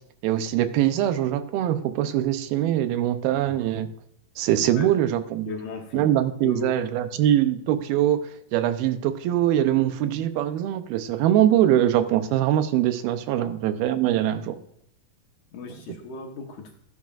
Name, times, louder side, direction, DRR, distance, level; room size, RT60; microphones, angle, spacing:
voice 1, 0.2-3.9 4.4-5.5 5.9-14.6, right 11 dB, 80° right, 10 dB, 2.5 m, -23 dB
voice 2, 5.5-6.1 6.4-6.8 13.4-13.7 15.5-16.7, left 5 dB, 65° left, 2 dB, 2.2 m, -37 dB
12.0 x 10.5 x 2.4 m, 0.71 s
omnidirectional pair, 4.4 m